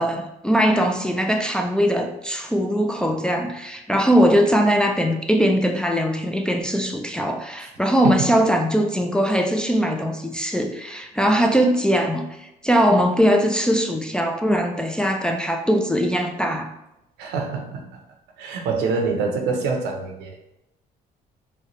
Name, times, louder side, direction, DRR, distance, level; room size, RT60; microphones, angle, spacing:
voice 1, 0.0-16.7, equal, 5° left, 3 dB, 0.3 m, -21 dB
voice 2, 8.0-8.4 17.2-18.0 18.4-20.4, right 4 dB, 85° right, 3 dB, 0.7 m, -26 dB
4.1 x 2.2 x 3.0 m, 0.87 s
cardioid pair, 110°, 17 cm